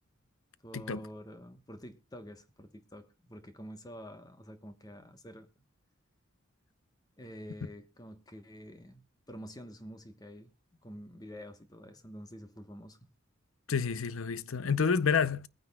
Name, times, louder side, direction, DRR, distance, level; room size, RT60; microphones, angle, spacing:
voice 1, 0.6-5.6 7.2-10.5 10.8-13.0, equal, 20° left, 1.1 m, -48 dB
voice 2, 13.7-15.5, left 6 dB, 80° left, 0.7 m, -29 dB
21.5 x 9.5 x 2.3 m
head